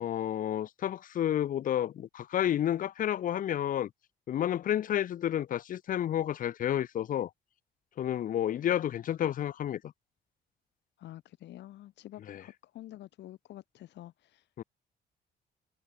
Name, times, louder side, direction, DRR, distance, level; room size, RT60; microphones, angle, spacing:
voice 1, 0.0-3.9 4.3-7.3 8.0-9.9 12.3-12.4 14.6-14.7, left 11 dB, 50° left, 0.7 m, -30 dB
voice 2, 11.0-14.5, left 14 dB, 80° left, 1.4 m, -48 dB
cardioid pair, 145°, 18 cm